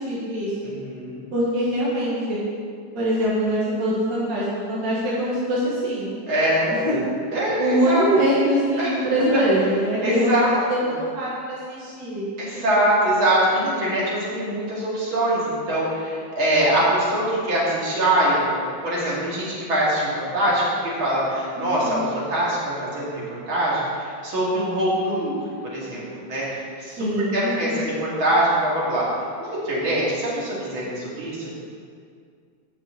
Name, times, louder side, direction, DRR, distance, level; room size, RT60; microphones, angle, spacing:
voice 1, 0.0-0.7 1.3-2.4 2.9-6.1 6.7-7.1 7.6-12.3 21.6-22.0 27.0-27.8, equal, 65° right, -7 dB, 2.3 m, -23 dB
voice 2, 0.6-1.2 6.3-6.9 7.3-8.0 8.8-8.9 10.0-10.5 12.4-25.4 25.7-29.1 29.4-31.5, right 1 dB, 80° right, -7 dB, 3.2 m, -23 dB
8.2 x 5.9 x 8.0 m, 2.2 s
omnidirectional pair, 2.2 m